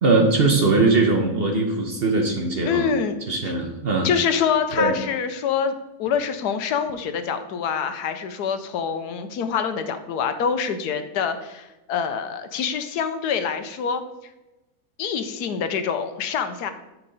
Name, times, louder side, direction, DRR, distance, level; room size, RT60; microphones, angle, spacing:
voice 1, 0.0-2.8 3.3-4.1 4.7-5.0, right 3 dB, 45° right, 2 dB, 1.0 m, -20 dB
voice 2, 2.7-3.2 4.0-5.7 6.0-14.0 15.0-16.7, left 7 dB, 85° left, 9 dB, 1.3 m, -25 dB
9.9 x 4.7 x 4.0 m, 0.99 s
omnidirectional pair, 1.7 m